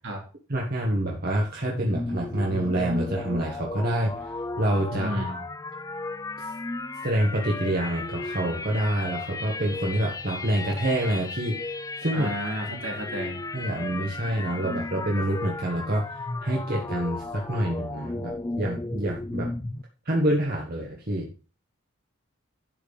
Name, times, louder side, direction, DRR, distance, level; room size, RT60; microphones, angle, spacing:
voice 1, 0.5-5.4 6.4-6.5 7.0-12.3 13.5-19.5 20.1-21.3, right 1 dB, 45° right, -2 dB, 1.7 m, -27 dB
sound 1, 1.7-19.8, left 2 dB, 15° left, 0.5 m, -34 dB
voice 2, 4.9-5.4 12.1-13.4, right 1 dB, 70° right, -1 dB, 3.6 m, -32 dB
11.0 x 4.7 x 5.3 m, 0.35 s
head